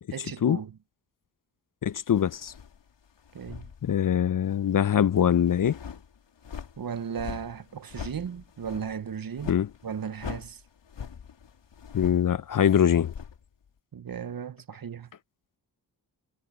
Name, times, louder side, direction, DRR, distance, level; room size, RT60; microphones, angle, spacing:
voice 1, 0.1-0.8 3.3-3.7 6.8-9.5 9.8-10.6 13.9-15.1, right 7 dB, 50° right, 1.0 m, -36 dB
voice 2, 1.8-2.5 3.8-5.8 9.5-9.7 11.9-13.1, left 9 dB, 50° left, 0.6 m, -23 dB
sound 1, 2.1-4.3 4.6-13.7, left 7 dB, 80° left, 3.5 m, -43 dB
cardioid pair, 70°, 43 cm